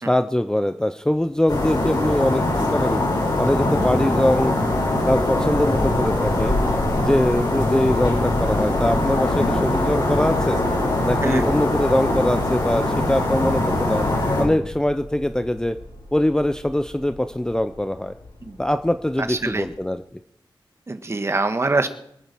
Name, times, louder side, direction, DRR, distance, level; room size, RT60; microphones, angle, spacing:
voice 1, 0.1-3.0 3.4-4.7 5.1-6.6 7.0-10.6 11.0-14.0 14.4-15.8 16.1-18.1 18.6-20.0, left 1 dB, 10° left, 10 dB, 0.6 m, -22 dB
sound 1, 1.0-19.8, left 2 dB, 85° left, 7.2 m, -38 dB
sound 2, 1.5-14.4, left 1 dB, 55° left, 7.0 m, -22 dB
voice 2, 19.2-19.7 20.9-21.9, right 3 dB, 30° right, 8 dB, 1.5 m, -24 dB
24.5 x 8.8 x 6.1 m, 0.72 s
wide cardioid pair, 115°, 8 cm